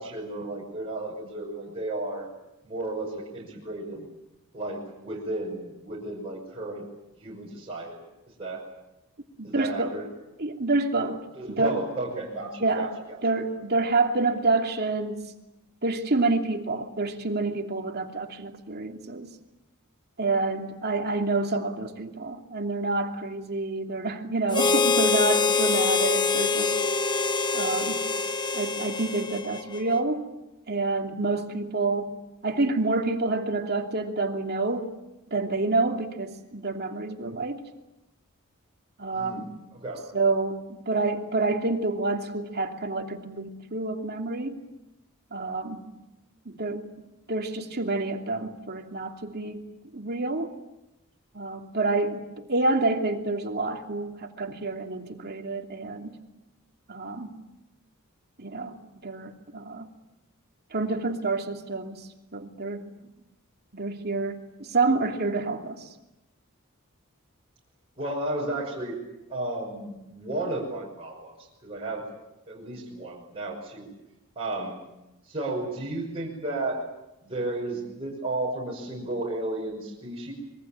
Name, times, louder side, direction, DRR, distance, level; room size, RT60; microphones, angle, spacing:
voice 1, 0.0-2.3 2.6-4.1 4.5-6.9 7.2-7.9 8.4-8.6 9.4-10.1 11.3-13.2 13.5-13.6 39.1-40.1 68.0-69.0 69.3-71.3 71.6-72.1 72.5-73.9 74.4-74.8 75.2-76.8 77.2-80.3, right 2 dB, 25° right, -4 dB, 6.0 m, -33 dB
voice 2, 9.4-10.0 10.4-11.8 12.6-12.9 13.2-15.2 15.8-19.3 20.2-26.8 27.5-28.0 28.5-30.3 30.7-32.1 32.4-34.9 35.3-37.6 39.0-39.5 40.1-44.6 45.3-45.8 46.4-46.9 47.3-49.7 49.9-50.5 51.3-56.1 56.9-57.3 58.4-58.8 59.0-59.9 60.7-62.8 63.7-65.9, right 3 dB, 45° right, 3 dB, 2.8 m, -28 dB
Harmonica, 24.5-30.0, left 4 dB, 20° left, 1.1 m, -25 dB
26.0 x 23.0 x 8.8 m, 0.93 s
head